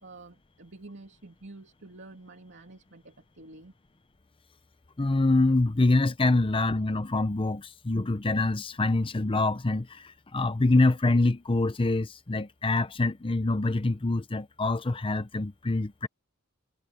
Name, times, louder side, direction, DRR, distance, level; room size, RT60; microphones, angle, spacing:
voice 1, 0.0-3.7, right 2 dB, 55° right, 2.8 m, -49 dB
voice 2, 5.0-16.1, left 2 dB, 25° left, 0.7 m, -25 dB
head